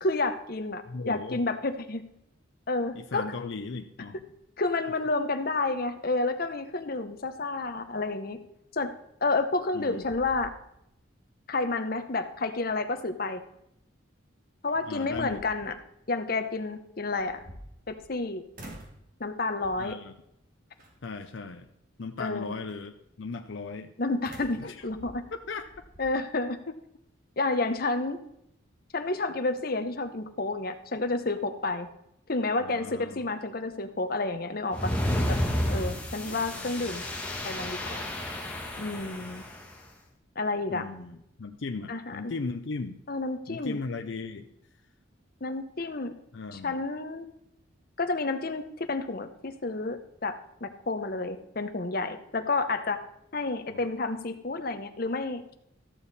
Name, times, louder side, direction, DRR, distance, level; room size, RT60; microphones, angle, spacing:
voice 1, 0.0-2.0 2.7-3.2 4.6-8.4 8.7-8.9 9.2-10.5 11.5-13.4 14.6-15.7 16.1-17.4 17.9-18.4 19.2-20.0 22.2-22.6 24.0-25.2 26.0-26.6 27.4-28.2 28.9-31.9 32.3-34.9 35.3-35.4 35.7-37.1 37.4-38.0 38.8-39.4 40.4-40.9 41.9-42.3 43.1-43.8 45.4-46.1 46.5-47.3 48.0-50.3 50.6-53.0 53.3-55.4, left 3 dB, 50° left, 9 dB, 0.9 m, -30 dB
voice 2, 0.9-1.4 2.9-4.3 9.7-10.0 14.8-15.4 19.8-20.1 21.0-21.7 22.0-23.9 24.6-24.9 25.5-25.7 32.6-33.3 36.2-36.7 40.7-43.0 43.5-44.5 46.3-46.8 53.7-53.8, left 4 dB, 70° left, 5 dB, 0.6 m, -37 dB
sound 1, 9.4-9.7 10.0-11.0 11.4-11.5 14.2-14.3 14.8-15.8 17.1-18.2 18.5-19.1 19.6-20.0 20.8-21.2 24.2-26.1, right 1 dB, 45° right, 1.9 m, -48 dB
sound 2, 34.7-39.6, left 1 dB, 5° left, 1.3 m, -31 dB
13.5 x 7.0 x 4.1 m, 0.78 s
head